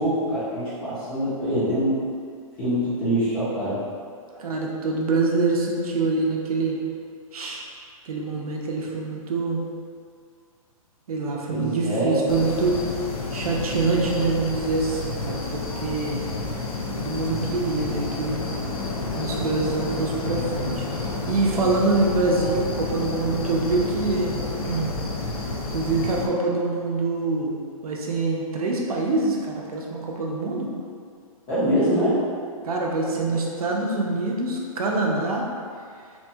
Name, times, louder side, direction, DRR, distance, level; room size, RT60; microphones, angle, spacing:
voice 1, 0.0-2.0 2.6-3.8 4.3-4.4 11.5-12.2 31.5-32.2, equal, 10° left, -12 dB, 0.4 m, -24 dB
voice 2, 4.4-6.8 7.3-7.6 8.0-9.6 11.1-12.8 13.3-16.3 17.0-18.4 19.1-24.9 25.7-30.7 32.6-35.5, right 3 dB, 80° right, -1 dB, 0.5 m, -25 dB
sound 1, 12.3-26.3, left 3 dB, 80° left, 0.5 m, -30 dB
2.8 x 2.2 x 2.7 m, 2.2 s
hypercardioid pair, 170°, 19 cm